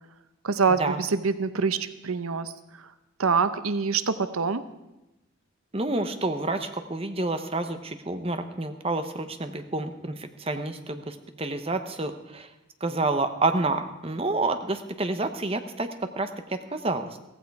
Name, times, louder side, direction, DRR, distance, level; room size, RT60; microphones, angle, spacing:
voice 1, 0.4-2.5 3.2-4.6, right 5 dB, 90° right, 12 dB, 0.8 m, -25 dB
voice 2, 5.7-12.5 12.8-17.2, right 2 dB, 25° right, 8 dB, 0.9 m, -29 dB
16.0 x 15.0 x 4.7 m, 0.96 s
head